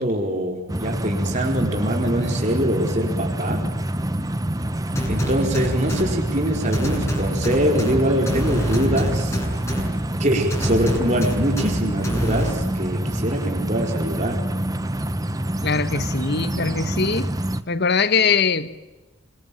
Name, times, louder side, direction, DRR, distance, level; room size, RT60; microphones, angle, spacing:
voice 1, 0.0-3.6 5.1-9.4 10.2-14.4, right 1 dB, 35° right, 4.7 m, -23 dB
sound 1, 0.7-17.6, right 1 dB, 15° right, 1.0 m, -26 dB
sound 2, 5.0-6.0 6.7-7.9 8.3-9.8 10.5-11.7 12.0-12.5, equal, 15° left, 7.1 m, -25 dB
voice 2, 15.6-17.3 17.7-18.8, left 5 dB, 50° left, 1.3 m, -22 dB
26.5 x 25.0 x 9.0 m
head